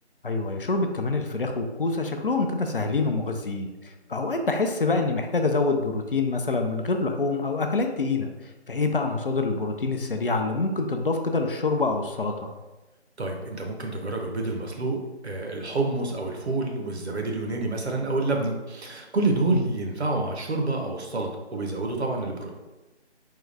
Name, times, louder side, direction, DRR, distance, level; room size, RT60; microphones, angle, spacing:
voice 1, 0.2-8.3 8.7-12.5 19.5-19.7, left 3 dB, 55° left, 5 dB, 0.5 m, -26 dB
voice 2, 13.2-22.5, right 2 dB, 65° right, 2 dB, 0.9 m, -28 dB
3.7 x 3.2 x 3.2 m, 1.1 s
figure-of-eight pair, 160°, 34 cm